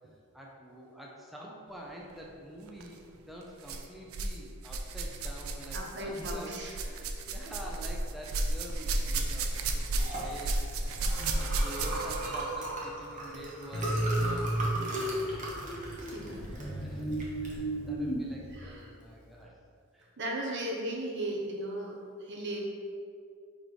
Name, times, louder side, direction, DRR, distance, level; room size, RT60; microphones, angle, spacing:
voice 1, 0.3-3.0 3.3-15.6 16.5-19.5 19.9-20.1, right 1 dB, ahead, -3 dB, 0.6 m, -47 dB
sound 1, 2.7-2.9 3.6-4.4 4.6-12.4 13.4-13.5 14.3-14.4, right 2 dB, 85° right, 0.5 m, -33 dB
voice 2, 5.7-6.8 11.0-11.5 16.0-16.5 18.5-18.9 20.2-22.7, right 1 dB, 60° right, -1 dB, 1.0 m, -37 dB
Liquid, 9.2-19.4, right 1 dB, 35° right, 1.1 m, -38 dB
sound 2, 13.7-18.7, right 1 dB, 30° left, 0.9 m, -34 dB
5.1 x 4.1 x 4.7 m, 2.3 s
head